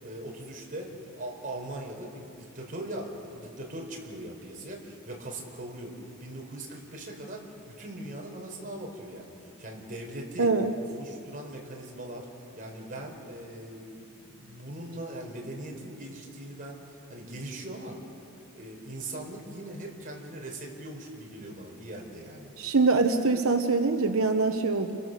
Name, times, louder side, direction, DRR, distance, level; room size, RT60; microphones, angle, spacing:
voice 1, 0.0-10.5 10.9-12.3 12.5-18.0 18.5-22.5, right 1 dB, 40° right, 0 dB, 4.5 m, -40 dB
voice 2, 10.4-10.7 22.6-25.0, right 3 dB, 70° right, 6 dB, 1.1 m, -24 dB
30.0 x 22.5 x 6.8 m, 2.6 s
head